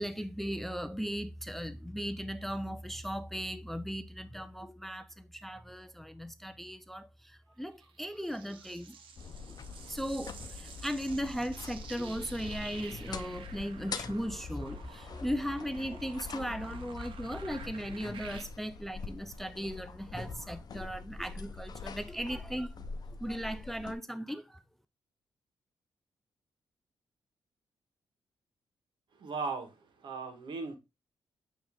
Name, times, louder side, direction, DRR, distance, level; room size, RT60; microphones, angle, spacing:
voice 1, 0.0-9.0 9.9-22.7 23.2-24.6, equal, 5° left, 0.4 m, -37 dB
sound 1, 7.8-18.4, right 6 dB, 80° right, 1.1 m, -51 dB
sound 2, 9.2-23.9, left 4 dB, 50° left, 0.7 m, -44 dB
voice 2, 29.2-30.8, right 4 dB, 65° right, 1.5 m, -38 dB
8.5 x 3.1 x 3.6 m
cardioid pair, 85°, 9 cm